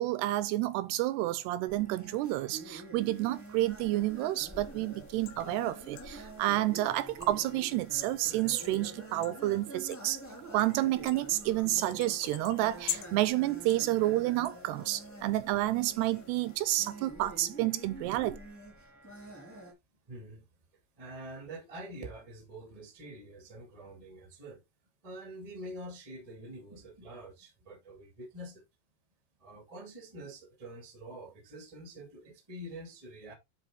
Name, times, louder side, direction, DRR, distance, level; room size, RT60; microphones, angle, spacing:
voice 1, 0.0-10.2 10.5-18.4, right 16 dB, 80° right, 2.6 m, -30 dB
sound 1, 1.7-19.7, right 2 dB, 10° left, 1.1 m, -47 dB
sound 2, 3.0-16.8, left 13 dB, 80° left, 2.8 m, -47 dB
voice 2, 20.1-20.4 21.0-24.6 25.0-28.6 29.4-33.3, right 1 dB, 40° right, 0.4 m, -46 dB
9.9 x 4.2 x 3.7 m
omnidirectional pair, 4.9 m